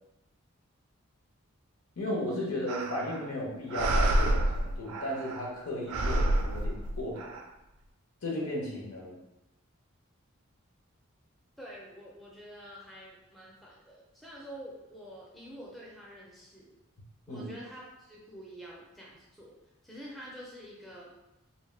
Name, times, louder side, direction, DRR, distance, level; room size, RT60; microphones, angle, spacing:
voice 1, 2.0-7.3 8.2-9.2 17.3-17.5, left 1 dB, 80° left, -3 dB, 0.8 m, -35 dB
sound 1, 2.7-3.3 3.7-5.5 5.9-7.4, right 1 dB, 85° right, 0.3 m, -29 dB
voice 2, 11.6-16.8 17.3-19.5 19.8-21.1, equal, ahead, -5 dB, 0.4 m, -47 dB
2.7 x 2.0 x 3.1 m, 0.96 s
head